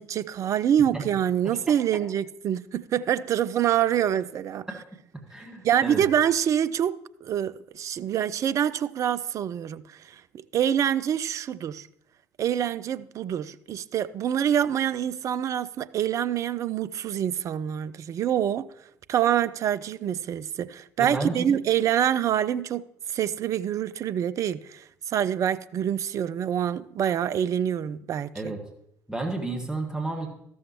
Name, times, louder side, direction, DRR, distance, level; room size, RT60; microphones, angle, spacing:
voice 1, 0.0-4.7 5.6-10.0 10.5-11.9 12.4-18.7 19.1-22.8 23.1-28.5, right 9 dB, 35° right, 0.3 m, -26 dB
voice 2, 5.1-6.0 21.0-21.6 28.3-28.6 29.1-30.3, right 2 dB, 5° right, 1.7 m, -32 dB
13.0 x 7.0 x 3.0 m
figure-of-eight pair, 55°, 9 cm